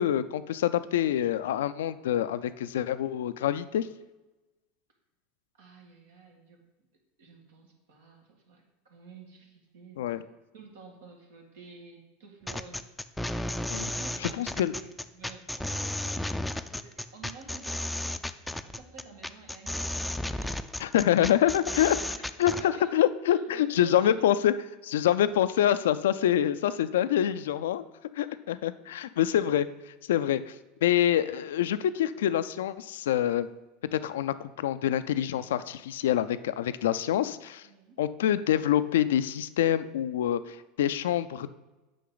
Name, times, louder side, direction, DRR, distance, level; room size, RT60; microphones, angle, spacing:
voice 1, 0.0-3.9 10.0-10.2 13.7-13.9 14.4-14.7 20.8-22.0 22.4-24.5 24.8-27.9 28.2-29.7 30.1-30.5 30.8-33.5 33.8-37.7 38.0-41.5, left 11 dB, 80° left, 13 dB, 0.3 m, -26 dB
voice 2, 5.5-6.6 7.2-10.2 10.5-13.2 13.9-14.9 15.1-18.3 18.6-20.6 21.9-22.9 23.3-24.3 37.6-38.0, right 4 dB, 80° right, 1 dB, 1.7 m, -51 dB
sound 1, 12.5-22.6, left 1 dB, 5° left, 0.4 m, -33 dB
8.5 x 5.7 x 3.9 m, 1.1 s
hypercardioid pair, 95°, 0 cm